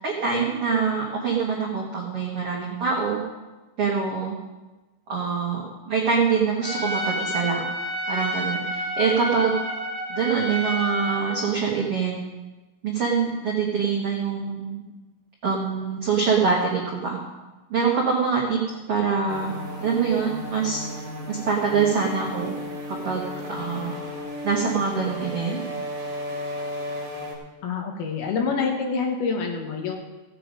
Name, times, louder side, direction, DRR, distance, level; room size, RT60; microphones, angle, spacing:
voice 1, 0.0-3.2 3.8-4.4 5.1-7.6 8.1-9.5 10.1-12.2 12.8-14.8 15.4-17.2 17.7-18.6 18.9-19.5 19.8-20.8 21.3-22.5 22.9-24.0 24.4-25.6, right 5 dB, 85° right, -3 dB, 1.3 m, -24 dB
Trumpet, 6.6-11.5, equal, 20° right, 2.2 m, -29 dB
sound 1, 19.3-27.3, left 1 dB, 45° right, 3.2 m, -34 dB
voice 2, 27.6-30.0, left 5 dB, 70° left, 2 dB, 2.8 m, -26 dB
15.5 x 8.9 x 5.2 m, 1.2 s
omnidirectional pair, 5.2 m